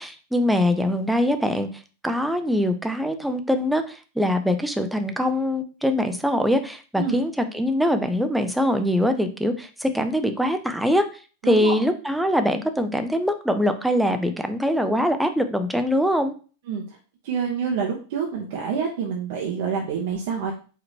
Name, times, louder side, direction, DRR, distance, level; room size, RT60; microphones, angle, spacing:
voice 1, 0.0-1.7 2.0-11.0 11.4-16.3, equal, ahead, 7 dB, 0.5 m, -23 dB
voice 2, 11.4-11.8 16.7-17.0 17.2-20.5, right 6 dB, 50° right, 0 dB, 0.7 m, -27 dB
5.0 x 2.8 x 2.8 m, 0.37 s
figure-of-eight pair, 90°, 0 cm